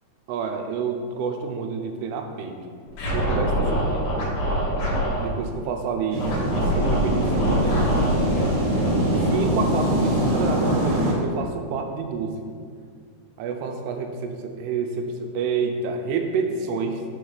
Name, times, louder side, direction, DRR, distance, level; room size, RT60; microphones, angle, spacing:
voice 1, 0.3-2.5 3.1-4.1 5.2-7.9 9.3-12.5 13.4-17.0, right 5 dB, 85° right, 4 dB, 2.7 m, -28 dB
Scratching (performance technique), 2.9-5.3 6.2-10.5, equal, 65° left, 3.4 m, -25 dB
sound 1, 6.1-11.1, right 1 dB, 55° right, 1.5 m, -23 dB
7.0 x 3.9 x 6.6 m, 2.1 s
omnidirectional pair, 4.7 m